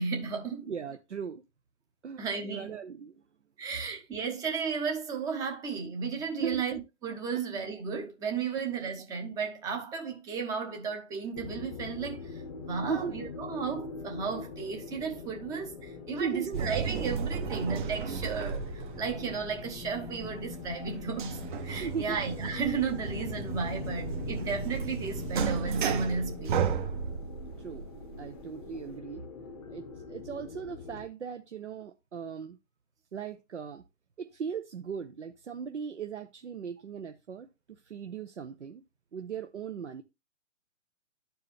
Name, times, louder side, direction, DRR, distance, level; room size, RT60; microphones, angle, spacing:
voice 1, 0.0-0.7 2.2-2.7 3.6-26.6, right 5 dB, 10° right, 0.8 m, -34 dB
voice 2, 0.6-1.4 2.0-3.2 6.4-6.6 8.6-8.7 12.8-13.2 16.2-16.7 17.6-17.7 21.8-22.2 27.6-27.8 28.2-29.2 29.7-32.6 33.1-33.8 34.2-38.8 39.1-40.0, right 6 dB, 65° right, 0.9 m, -38 dB
sound 1, 11.3-31.1, left 4 dB, 30° left, 0.8 m, -43 dB
sound 2, 16.5-29.0, right 6 dB, 40° right, 1.1 m, -35 dB
12.0 x 4.7 x 3.3 m
figure-of-eight pair, 130°, 38 cm